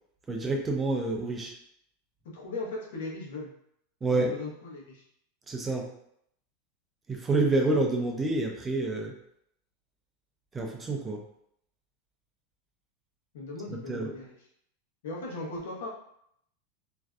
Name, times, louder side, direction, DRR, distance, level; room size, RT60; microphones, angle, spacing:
voice 1, 0.3-1.5 4.0-4.4 5.5-5.9 7.1-9.1 10.5-11.2 13.9-14.1, right 2 dB, 15° right, 1 dB, 0.3 m, -28 dB
voice 2, 2.3-3.5 4.1-5.0 13.3-14.4 15.0-15.9, left 2 dB, 80° left, -3 dB, 0.8 m, -38 dB
2.5 x 2.2 x 2.2 m, 0.72 s
supercardioid pair, 160°, 0 cm